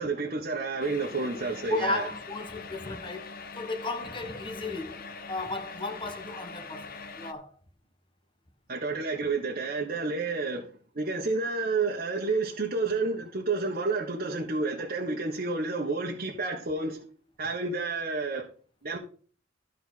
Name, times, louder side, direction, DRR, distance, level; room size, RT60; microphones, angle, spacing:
voice 1, 0.0-2.1 8.7-10.7 10.9-17.0 17.4-18.4 18.8-19.0, right 3 dB, 50° right, 1.5 m, -30 dB
sound 1, 0.8-7.3, left 4 dB, 50° left, 0.9 m, -43 dB
voice 2, 1.7-3.3 3.6-7.5, left 3 dB, 25° left, 1.3 m, -34 dB
12.5 x 4.6 x 6.0 m
head